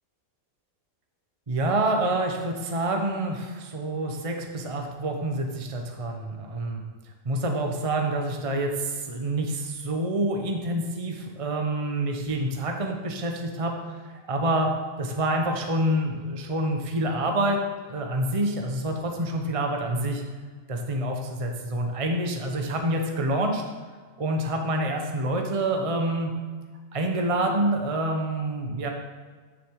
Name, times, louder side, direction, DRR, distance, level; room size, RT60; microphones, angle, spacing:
voice 1, 1.5-6.8 7.2-14.0 14.3-14.7 15.0-17.6 17.9-20.2 20.7-23.6 24.2-26.3 26.9-28.9, right 1 dB, 25° right, 2 dB, 1.1 m, -27 dB
14.0 x 6.8 x 4.8 m, 1.4 s
omnidirectional pair, 1.5 m